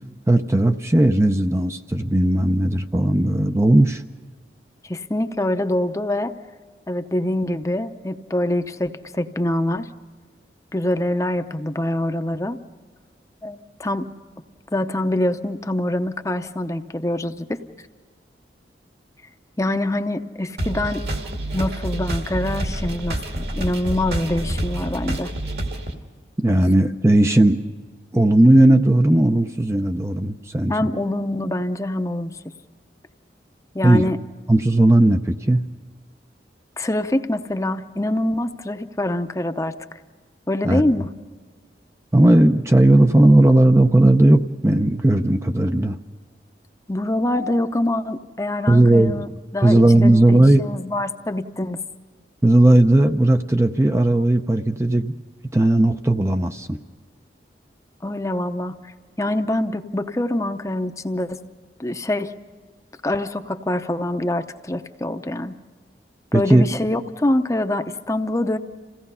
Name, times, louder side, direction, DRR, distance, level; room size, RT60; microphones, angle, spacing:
voice 1, 0.3-4.0 26.4-27.6 28.1-30.7 33.8-34.1 34.5-35.6 40.6-40.8 42.1-46.0 48.7-49.2 49.6-50.6 52.4-55.1 55.5-56.8 66.3-66.6, right 1 dB, 15° right, 6 dB, 0.5 m, -16 dB
voice 2, 4.8-6.3 6.9-9.9 10.7-12.6 13.4-14.1 14.7-17.6 19.6-21.1 21.5-25.3 30.7-32.3 33.7-34.2 36.8-40.0 40.5-41.1 46.9-51.8 58.0-58.9 59.2-61.4 61.8-62.3 63.0-65.6 66.3-68.6, left 1 dB, 20° left, 8 dB, 0.7 m, -25 dB
sound 1, 20.6-25.9, right 1 dB, 65° right, 2.2 m, -27 dB
27.5 x 17.0 x 5.5 m, 1.5 s
head